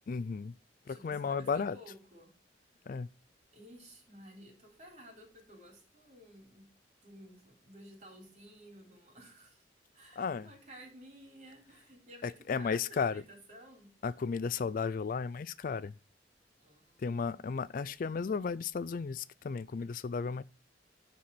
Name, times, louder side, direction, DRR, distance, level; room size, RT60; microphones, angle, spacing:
voice 1, 0.1-0.5 0.9-1.8 2.9-3.1 10.2-10.5 12.2-13.2 14.0-15.9 17.0-20.4, left 5 dB, 50° left, 0.4 m, -34 dB
voice 2, 0.9-2.3 3.5-6.7 7.0-9.6 9.9-13.9 16.6-17.0 17.3-17.5, equal, 40° right, 3.9 m, -54 dB
12.5 x 4.3 x 5.9 m
head